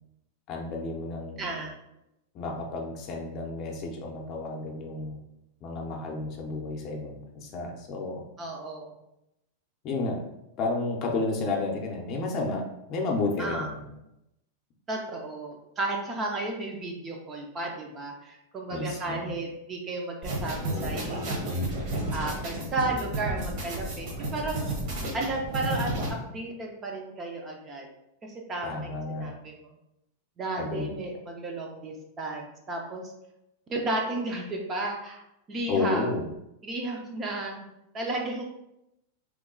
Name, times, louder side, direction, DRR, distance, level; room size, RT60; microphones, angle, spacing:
voice 1, 0.5-1.6 2.3-5.2 5.6-8.2 9.8-10.2 10.6-12.6 12.9-13.8 18.7-19.3 28.6-29.3 30.6-30.9 35.7-36.2, left 3 dB, 35° left, 1 dB, 0.6 m, -31 dB
voice 2, 1.4-1.8 8.4-9.0 13.4-13.7 14.9-21.5 22.1-24.9 25.1-27.9 28.2-29.7 30.4-33.1 33.7-35.2 35.5-36.1 36.6-37.6 37.9-38.4, right 2 dB, 25° right, 0 dB, 0.5 m, -33 dB
sound 1, 20.2-26.1, right 1 dB, 50° right, 1.1 m, -32 dB
3.1 x 2.3 x 3.7 m, 0.86 s
supercardioid pair, 145°, 0 cm